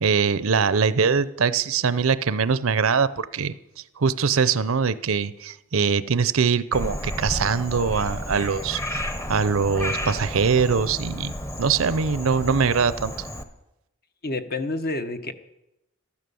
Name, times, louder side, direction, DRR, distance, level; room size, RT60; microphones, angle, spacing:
voice 1, 0.0-3.5 4.0-9.0 9.3-11.3 11.6-13.1, right 5 dB, 75° right, 16 dB, 0.6 m, -22 dB
Frog, 6.7-13.4, equal, 15° left, 1.0 m, -32 dB
voice 2, 14.2-15.3, left 2 dB, 45° left, 9 dB, 1.1 m, -28 dB
13.5 x 13.0 x 7.0 m, 0.89 s
head